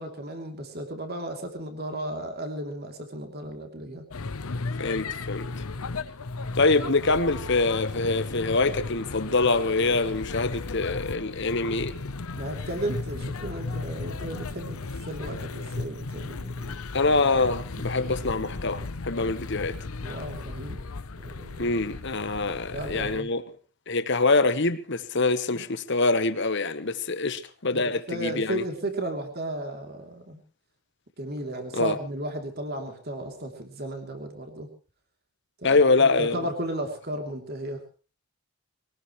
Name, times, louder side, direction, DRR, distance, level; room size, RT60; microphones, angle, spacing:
voice 1, 0.0-4.1 12.3-16.7 18.3-18.9 20.0-20.8 21.2-21.7 22.7-23.3 25.5-25.6 27.7-30.4 31.2-34.7 35.6-37.8, right 1 dB, 45° right, 3.1 m, -35 dB
sound 1, 4.1-23.2, left 3 dB, 75° left, 0.8 m, -35 dB
voice 2, 4.8-5.5 6.6-11.9 16.9-19.8 21.6-23.4 23.9-28.6 31.7-32.0 35.6-36.4, left 3 dB, 50° left, 1.2 m, -25 dB
23.0 x 18.5 x 3.2 m
head